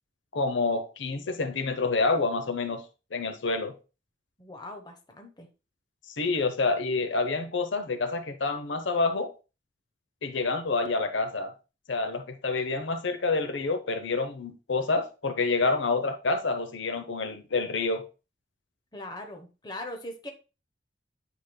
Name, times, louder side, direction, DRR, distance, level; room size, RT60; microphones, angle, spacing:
voice 1, 0.3-2.8 3.1-3.7 6.2-9.3 10.2-11.5 11.9-18.0, left 3 dB, 85° left, 0.7 m, -28 dB
voice 2, 4.4-5.5 18.9-20.3, left 1 dB, 20° left, 0.9 m, -40 dB
8.7 x 5.1 x 2.2 m
head